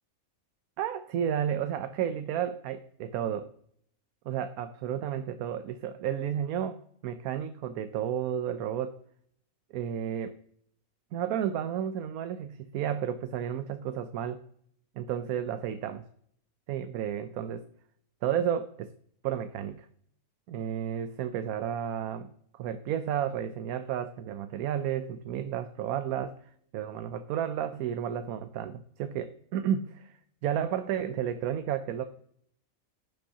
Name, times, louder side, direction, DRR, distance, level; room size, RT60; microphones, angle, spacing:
voice 1, 0.8-3.5 4.3-6.8 7.0-9.0 9.7-10.4 11.1-14.4 15.0-16.0 16.7-17.7 18.2-18.9 19.2-19.9 20.5-26.4 26.7-32.1, right 9 dB, 90° right, 10 dB, 1.0 m, -32 dB
15.5 x 5.4 x 2.8 m, 0.66 s
omnidirectional pair, 1.5 m